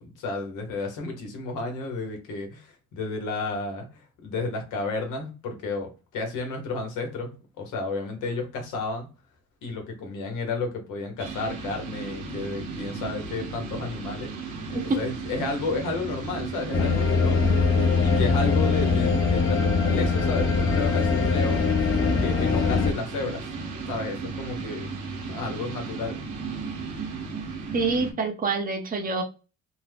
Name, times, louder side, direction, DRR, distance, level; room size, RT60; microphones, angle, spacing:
voice 1, 0.0-9.1 9.6-14.3 14.7-17.7 18.0-21.7 22.2-23.5 23.9-24.9 25.3-26.2, left 3 dB, 85° left, 1.1 m, -32 dB
sound 1, 11.2-28.1, right 4 dB, 90° right, 0.9 m, -35 dB
sound 2, 16.7-22.9, left 5 dB, 45° left, 0.8 m, -22 dB
voice 2, 27.7-29.2, right 4 dB, 30° right, 0.7 m, -26 dB
2.7 x 2.1 x 3.3 m
cardioid pair, 90°, 30 cm